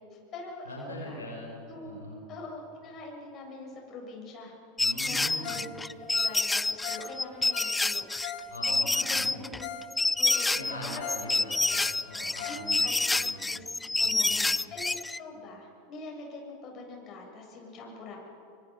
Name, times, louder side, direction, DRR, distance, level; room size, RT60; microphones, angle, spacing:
voice 1, 0.0-1.2 1.7-2.0 2.3-4.5 5.0-8.0 8.7-9.7 10.2-11.3 11.7-11.8 12.4-13.7 14.0-18.2, left 3 dB, 40° left, 0 dB, 7.4 m, -44 dB
voice 2, 0.7-2.3 4.8-5.6 8.5-9.4 10.5-11.8 12.0-12.8 13.1-13.5 14.0-14.6, left 1 dB, 85° left, -1 dB, 5.6 m, -42 dB
sound 1, 4.8-15.2, left 2 dB, 10° left, 0.4 m, -28 dB
Ringtone, 5.4-5.7 6.0-8.5 8.8-8.9 9.3-9.4 9.6-9.9 10.2-11.3 11.5-12.7 12.9-13.0 13.5-13.6, left 9 dB, 60° left, 2.8 m, -40 dB
29.0 x 25.0 x 5.3 m, 2.7 s
figure-of-eight pair, 85°, 0 cm